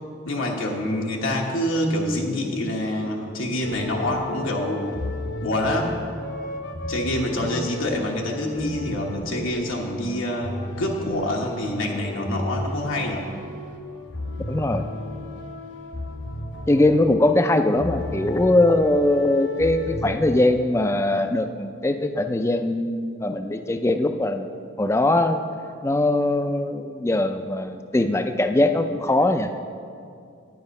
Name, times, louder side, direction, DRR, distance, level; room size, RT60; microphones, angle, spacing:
voice 1, 0.2-4.9 5.4-6.0 6.9-13.3, left 1 dB, 85° left, -1 dB, 1.2 m, -26 dB
sound 1, 3.6-20.2, left 2 dB, 65° left, 1.0 m, -34 dB
voice 2, 14.5-14.8 16.7-24.5 24.8-25.4 25.8-29.5, left 1 dB, 15° left, 8 dB, 0.4 m, -21 dB
11.0 x 9.0 x 5.3 m, 2.4 s
head